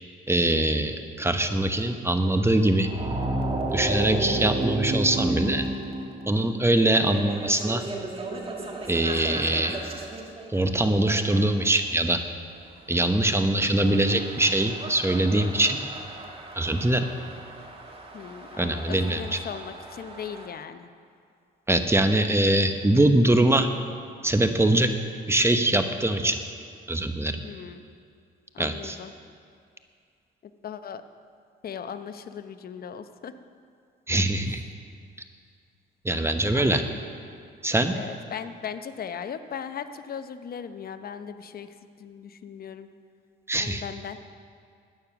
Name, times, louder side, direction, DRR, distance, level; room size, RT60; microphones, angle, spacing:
voice 1, 0.3-2.9 3.7-5.7 6.3-7.8 8.9-9.8 10.5-12.2 12.9-15.8 16.5-17.1 18.6-19.4 21.7-23.7 24.2-24.9 25.3-26.4 26.9-27.4 28.6-29.0 34.1-34.6 36.0-36.8 37.6-37.9 43.5-43.8, right 1 dB, 15° right, 7 dB, 0.9 m, -23 dB
sound 1, 2.8-11.6 13.1-20.5, right 2 dB, 30° right, 1.8 m, -34 dB
voice 2, 18.1-20.9 27.4-27.8 28.5-29.1 30.6-31.0 31.6-33.3 36.2-37.0 37.9-41.7 42.0-42.9 43.6-44.2, left 7 dB, 50° left, 10 dB, 0.8 m, -38 dB
14.0 x 9.5 x 5.9 m, 2.3 s
cardioid pair, 90°, 20 cm